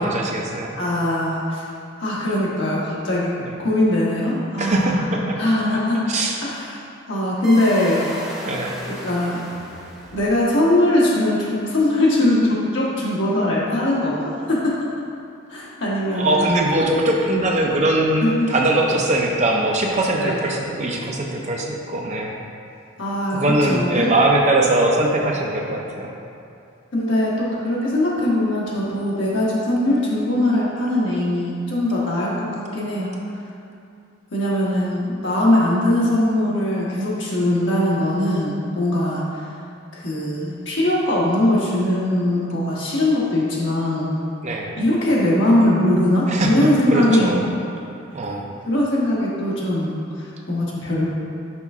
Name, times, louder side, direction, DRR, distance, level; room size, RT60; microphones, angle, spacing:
voice 1, 0.0-0.7 3.4-3.6 4.6-5.4 6.1-6.4 8.4-8.8 16.1-22.3 23.3-26.1 44.4-44.8 46.3-47.5 48.1-48.4, right 1 dB, 35° right, 0 dB, 0.6 m, -21 dB
voice 2, 0.8-1.6 2.0-3.3 3.6-6.0 6.4-6.7 7.1-8.1 9.0-9.4 10.1-14.7 15.5-16.5 18.2-18.5 20.2-20.4 23.0-24.1 26.9-33.1 34.3-39.2 39.9-44.1 44.8-47.5 48.7-51.1, left 1 dB, 65° left, -6 dB, 1.3 m, -21 dB
sound 1, 7.4-10.6, equal, 5° right, 0.8 m, -34 dB
5.9 x 4.6 x 3.6 m, 2.6 s
head